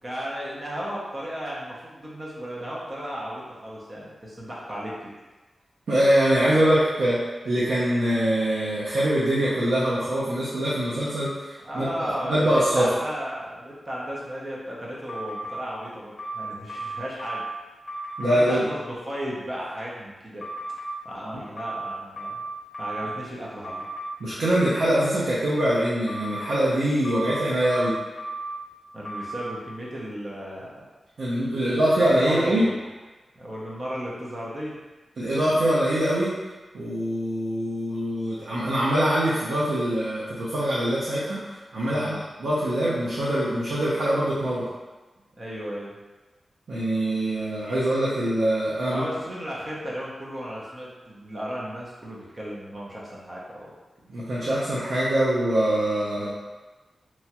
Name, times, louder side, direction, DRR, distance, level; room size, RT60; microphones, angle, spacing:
voice 1, 0.0-4.9 11.6-17.4 18.2-20.5 21.0-22.4 22.8-23.8 28.9-30.8 31.9-32.8 33.4-34.8 41.8-42.2 45.4-46.0 48.9-53.7 56.2-56.3, equal, 35° right, -5 dB, 0.6 m, -35 dB
voice 2, 5.9-7.2 7.4-11.9 12.3-12.9 18.2-18.6 24.2-27.9 31.2-32.7 35.2-36.3 36.7-44.6 46.7-49.0 54.1-56.3, right 1 dB, 90° right, -9 dB, 0.6 m, -23 dB
sound 1, 15.1-15.6 16.2-17.5 17.9-18.3 20.4-20.9 21.6-23.2 23.6-24.1 26.1-26.5 27.0-28.6 29.0-29.5, right 2 dB, 40° left, 0.9 m, -34 dB
3.0 x 2.3 x 2.9 m, 1.2 s
wide cardioid pair, 130°, 0 cm